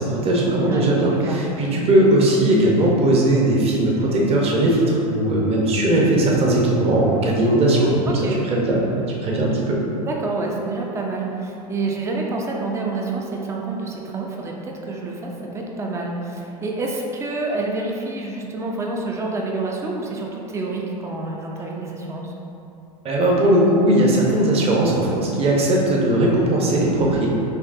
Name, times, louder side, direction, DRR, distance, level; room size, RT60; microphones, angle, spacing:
voice 1, 0.0-8.1 8.5-8.8 9.2-9.8 23.0-27.3, right 1 dB, 30° right, -3 dB, 0.8 m, -18 dB
voice 2, 8.1-8.4 10.0-22.3, right 3 dB, 15° right, 0 dB, 0.4 m, -28 dB
4.5 x 2.8 x 2.6 m, 2.7 s
hypercardioid pair, 100°, 21 cm